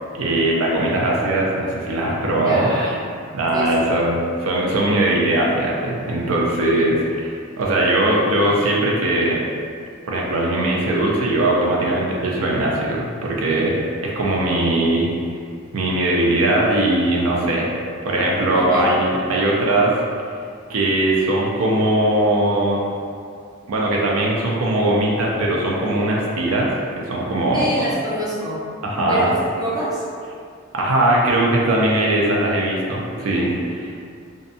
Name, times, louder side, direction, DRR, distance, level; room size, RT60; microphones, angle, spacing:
voice 1, 0.1-2.7 3.3-9.4 10.1-13.8 14.0-15.1 15.7-17.7 18.0-20.0 20.7-22.8 23.7-26.7 27.0-27.7 28.8-29.3 30.7-33.9, right 1 dB, 80° right, -3 dB, 0.4 m, -20 dB
voice 2, 2.4-3.2 3.5-3.9 18.5-18.9 27.5-30.0 33.2-33.5, equal, 20° right, -8 dB, 0.4 m, -27 dB
2.6 x 2.1 x 2.6 m, 2.2 s
head